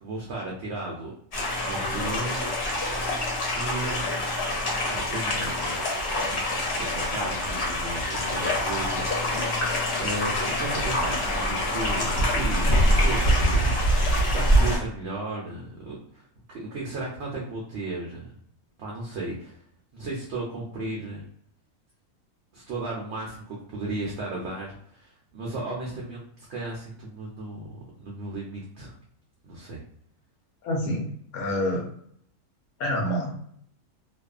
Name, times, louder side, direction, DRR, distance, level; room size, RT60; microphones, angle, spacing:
voice 1, 0.0-1.1 1.6-2.6 3.5-4.1 4.9-5.9 6.1-6.4 6.7-9.1 10.0-18.3 18.8-19.6 19.9-21.2 22.5-26.2 26.5-27.7 28.0-29.0 29.4-29.8, right 2 dB, 65° right, -3 dB, 0.7 m, -35 dB
sound 1, 1.3-14.8, equal, 55° left, 0.9 m, -25 dB
voice 2, 30.6-31.1 31.3-31.9 32.8-33.4, left 1 dB, 80° left, -2 dB, 1.0 m, -27 dB
2.5 x 2.3 x 2.3 m, 0.65 s
omnidirectional pair, 1.6 m